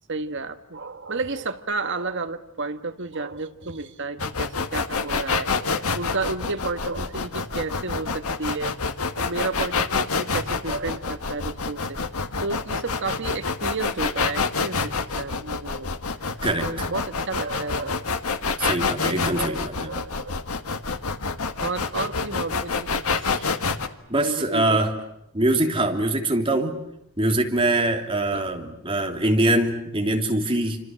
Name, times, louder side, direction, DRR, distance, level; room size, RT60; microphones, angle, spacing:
voice 1, 0.1-8.8 9.2-12.0 12.4-15.9 16.6-18.1 19.1-20.4 21.6-23.4 24.1-24.8 28.3-28.5, right 3 dB, 55° right, 9 dB, 1.6 m, -32 dB
sound 1, 4.2-23.9, left 4 dB, 80° left, 1.6 m, -27 dB
voice 2, 16.4-16.9 18.6-19.9 23.3-23.6 24.1-24.9 25.3-26.8 27.2-30.8, right 1 dB, 25° right, 3 dB, 3.1 m, -23 dB
29.5 x 26.0 x 7.7 m, 0.78 s
head